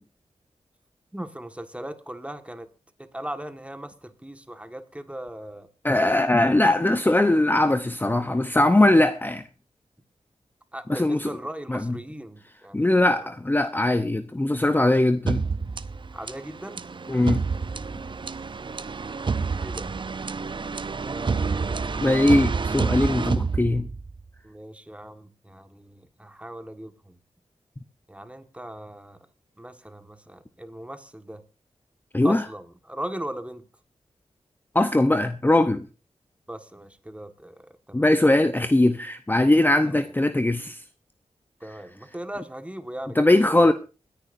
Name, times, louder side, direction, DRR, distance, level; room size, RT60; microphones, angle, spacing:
voice 1, 1.1-2.7 3.1-5.7 10.7-13.3 16.1-16.8 19.6-19.9 21.0-21.9 24.4-27.1 28.1-29.2 29.6-31.4 32.2-33.6 36.5-38.1 39.8-40.2 41.6-43.7, right 1 dB, 10° right, 1.6 m, -38 dB
voice 2, 5.8-9.4 10.9-11.3 11.7-12.0 12.7-15.4 17.1-17.4 22.0-23.9 32.1-32.4 34.7-35.9 37.9-40.8 43.2-43.7, left 1 dB, 15° left, 0.8 m, -20 dB
sound 1, 15.3-24.2, right 4 dB, 45° right, 0.6 m, -28 dB
27.5 x 10.0 x 2.6 m
cardioid pair, 60°, 12 cm